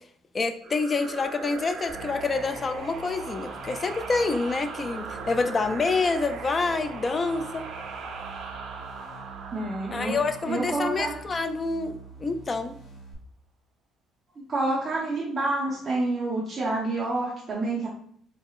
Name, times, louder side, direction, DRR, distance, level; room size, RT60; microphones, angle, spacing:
voice 1, 0.3-7.7 9.9-12.8, left 3 dB, 25° left, 9 dB, 0.3 m, -27 dB
sound 1, 0.6-12.0, right 4 dB, 60° right, 0.6 m, -39 dB
sound 2, 1.9-13.1, right 3 dB, 80° left, 1.3 m, -46 dB
voice 2, 9.5-10.2 10.5-11.1 14.5-17.9, right 2 dB, 30° right, -7 dB, 0.9 m, -28 dB
3.9 x 3.6 x 2.4 m, 0.62 s
cardioid pair, 140°, 0 cm